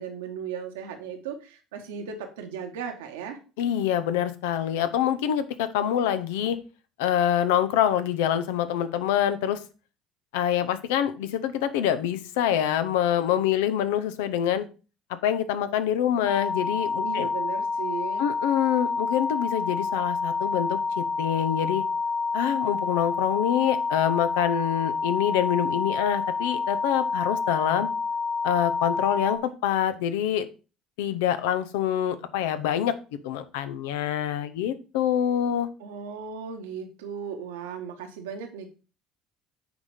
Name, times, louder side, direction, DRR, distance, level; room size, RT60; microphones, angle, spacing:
voice 1, 0.0-3.4 17.0-18.2 35.8-38.7, right 6 dB, 80° right, 5 dB, 1.4 m, -36 dB
voice 2, 3.6-6.6 7.0-9.6 10.3-14.7 15.1-17.3 18.2-21.8 22.3-27.9 28.4-30.5 31.0-32.9 33.2-35.7, left 10 dB, 75° left, 12 dB, 0.8 m, -26 dB
sound 1, 16.3-29.4, left 4 dB, 40° left, 1.9 m, -28 dB
9.5 x 4.2 x 5.0 m, 0.34 s
hypercardioid pair, 65°, 0 cm